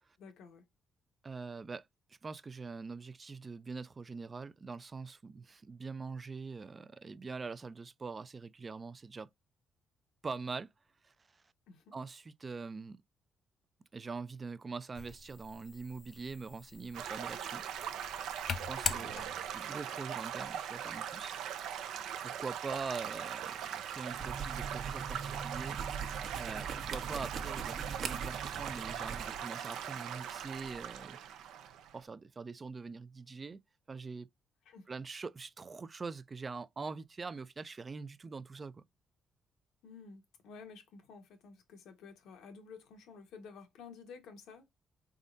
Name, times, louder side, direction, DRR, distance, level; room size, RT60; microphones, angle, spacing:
voice 1, 0.2-0.7 11.7-11.9 19.0-19.1 34.6-34.9 39.8-44.7, left 5 dB, 85° left, 1.1 m, -52 dB
voice 2, 1.2-1.9 2.2-9.3 10.2-10.7 11.0-11.1 11.9-13.0 13.9-17.6 18.5-21.3 22.2-31.2 31.9-33.6 33.9-34.3 34.9-38.8, right 4 dB, 30° right, 0.4 m, -43 dB
sound 1, 15.0-19.7, left 6 dB, 50° left, 0.5 m, -42 dB
Stream / Gurgling / Trickle dribble, 16.9-32.1, right 9 dB, 85° right, 0.5 m, -40 dB
sound 2, 24.1-29.4, right 5 dB, 60° right, 0.9 m, -41 dB
4.1 x 3.5 x 2.5 m
cardioid pair, 90°, 0 cm